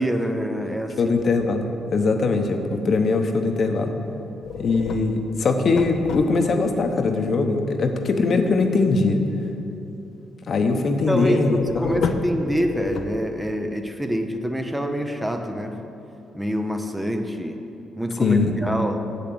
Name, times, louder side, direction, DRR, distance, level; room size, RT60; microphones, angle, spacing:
voice 1, 0.0-1.1 11.1-15.8 16.3-17.6 18.0-19.0, equal, 5° right, 5 dB, 0.7 m, -26 dB
voice 2, 1.0-3.9 4.6-9.2 10.5-12.1 18.2-18.5, left 3 dB, 50° left, 5 dB, 1.0 m, -21 dB
sound 1, 4.4-6.7 11.3-13.6, left 6 dB, 70° left, 0.6 m, -31 dB
7.8 x 6.9 x 7.9 m, 2.8 s
cardioid pair, 90°, 0 cm